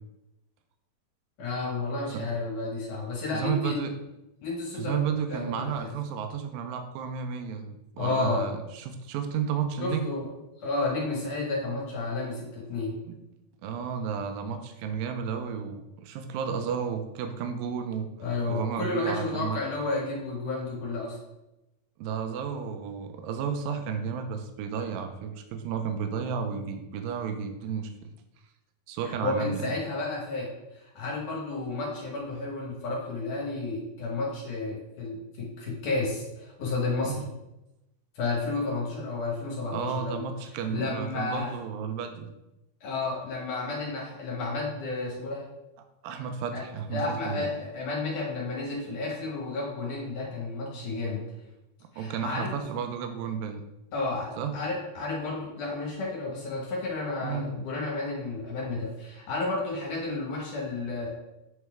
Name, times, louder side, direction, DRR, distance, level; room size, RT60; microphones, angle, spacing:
voice 1, 1.4-3.8 4.4-5.0 5.3-5.9 8.0-8.5 9.8-10.3 10.6-13.0 18.2-21.2 29.2-37.3 38.2-40.2 40.7-41.5 42.8-45.5 46.5-46.6 46.9-51.2 51.9-52.5 53.9-61.2, left 3 dB, 65° left, -2 dB, 2.3 m, -32 dB
voice 2, 3.3-3.9 4.8-10.1 13.1-13.2 13.6-18.1 18.5-19.6 22.0-28.1 28.9-29.7 37.0-37.2 39.7-42.3 46.0-47.5 52.0-53.6 54.4-54.5 57.2-57.6, right 7 dB, 80° right, 6 dB, 2.3 m, -32 dB
8.2 x 4.1 x 3.4 m, 0.93 s
omnidirectional pair, 4.2 m